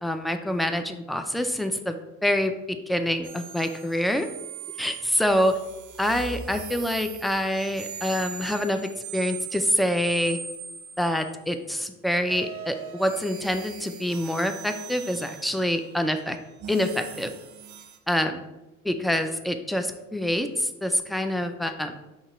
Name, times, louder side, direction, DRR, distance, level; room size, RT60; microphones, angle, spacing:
voice 1, 0.0-2.5 2.9-4.3 4.8-5.6 6.0-10.4 11.0-16.4 16.7-17.3 18.1-18.4 18.8-22.0, left 1 dB, ahead, 7 dB, 0.5 m, -26 dB
sound 1, 3.2-11.5 12.2-18.0, right 8 dB, 75° right, 0.9 m, -40 dB
5.9 x 2.9 x 5.6 m, 1.0 s
cardioid pair, 90°, 30 cm